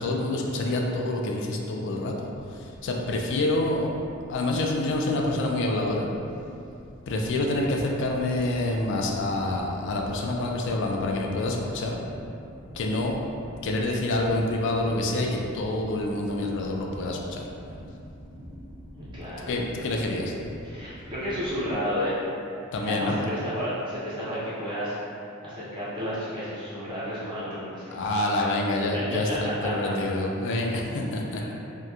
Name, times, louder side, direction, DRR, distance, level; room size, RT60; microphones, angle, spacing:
voice 1, 0.0-3.9 4.3-6.1 7.1-12.0 12.7-13.2 13.6-17.5 19.5-20.3 22.7-23.2 27.9-31.5, left 2 dB, 55° left, 1 dB, 0.3 m, -27 dB
sound 1, 2.2-21.7, equal, 60° right, 0.7 m, -45 dB
voice 2, 19.0-19.5 20.6-22.2 22.8-25.0 25.4-28.5 28.9-29.4 29.6-29.9 31.3-31.5, equal, 25° right, -11 dB, 0.5 m, -32 dB
2.8 x 2.1 x 2.3 m, 2.6 s
head